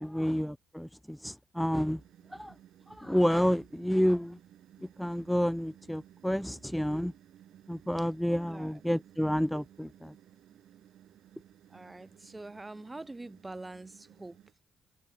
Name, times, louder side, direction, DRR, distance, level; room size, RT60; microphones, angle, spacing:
voice 1, 0.0-2.0 2.3-2.5 2.9-4.4 4.8-7.1 7.7-10.1, equal, ahead, 0.6 m, -30 dB
sound 1, 2.0-14.5, right 11 dB, 75° right, 5.7 m, -58 dB
voice 2, 8.5-8.8 11.7-14.5, right 2 dB, 15° right, 1.4 m, -45 dB
cardioid pair, 90°, 0 cm